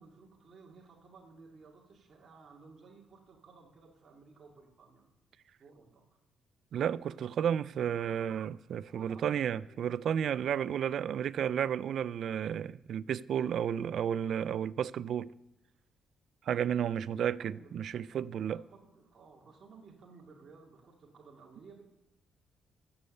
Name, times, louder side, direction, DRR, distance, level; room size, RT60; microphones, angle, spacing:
voice 1, 0.0-5.0 5.6-6.0 8.9-9.8 13.3-13.6 16.4-21.8, right 4 dB, 40° right, 2.2 m, -56 dB
voice 2, 6.7-15.3 16.4-18.6, right 9 dB, 55° right, 0.3 m, -32 dB
14.5 x 7.1 x 6.5 m
cardioid pair, 145°, 0 cm